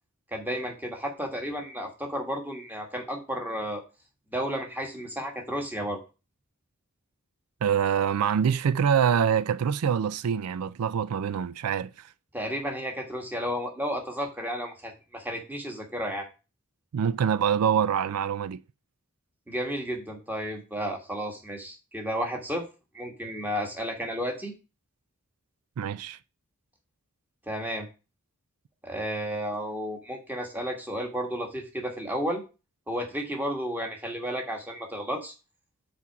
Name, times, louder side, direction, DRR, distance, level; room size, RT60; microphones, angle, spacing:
voice 1, 0.3-3.8 4.3-6.0 12.3-16.3 19.5-22.7 22.9-24.5 27.5-27.9 28.8-32.4 32.9-35.3, equal, 10° right, 1.5 m, -32 dB
voice 2, 7.6-12.1 16.9-18.6 25.8-26.2, right 8 dB, 85° right, 0.4 m, -25 dB
6.1 x 4.4 x 5.7 m
head